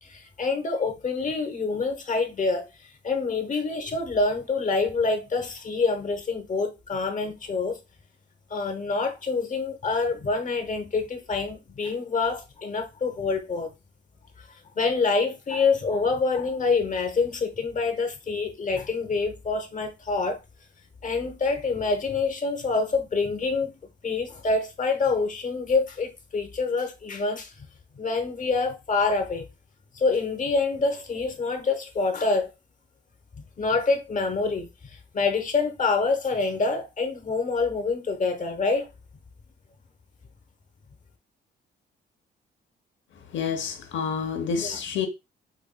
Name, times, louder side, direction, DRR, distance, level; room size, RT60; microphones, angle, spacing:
voice 1, 0.0-7.8 8.5-13.7 14.4-20.4 21.0-23.7 24.0-27.7 27.9-29.5 29.9-32.5 33.6-38.9 44.6-44.8, left 4 dB, 40° left, 0.9 m, -26 dB
voice 2, 43.3-45.1, left 6 dB, 70° left, 0.9 m, -28 dB
5.2 x 2.6 x 2.2 m
cardioid pair, 90°, 20 cm